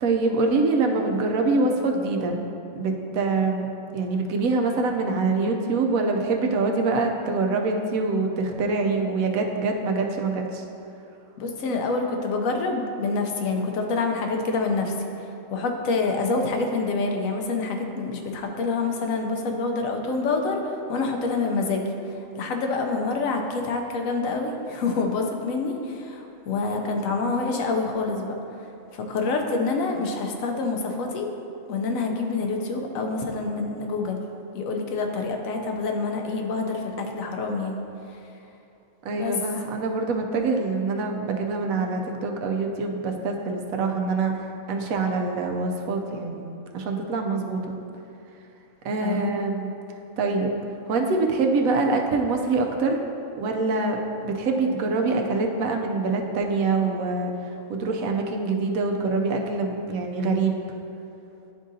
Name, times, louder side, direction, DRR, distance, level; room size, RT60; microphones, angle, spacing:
voice 1, 0.0-2.4 2.7-10.6 39.0-44.4 44.7-46.4 46.7-47.7 48.8-49.7 50.2-50.5 50.9-53.0 53.4-57.3 57.7-60.6, right 3 dB, 90° right, 2 dB, 1.1 m, -25 dB
voice 2, 11.4-14.9 15.5-20.6 20.9-21.9 22.4-28.3 28.9-31.3 31.7-34.2 34.5-37.8 39.2-39.3 49.0-49.3, left 3 dB, 80° left, 3 dB, 1.1 m, -27 dB
10.5 x 3.7 x 2.7 m, 2.8 s
omnidirectional pair, 1.4 m